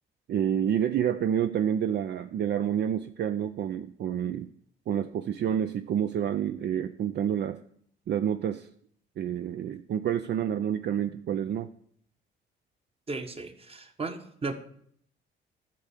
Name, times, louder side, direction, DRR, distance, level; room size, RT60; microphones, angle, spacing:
voice 1, 0.3-4.5 4.9-7.6 8.1-8.7 9.2-11.7, right 9 dB, 60° right, 10 dB, 0.5 m, -28 dB
voice 2, 13.1-14.5, right 3 dB, 30° right, 7 dB, 1.4 m, -35 dB
11.5 x 4.4 x 8.3 m, 0.65 s
cardioid pair, 90°, 20 cm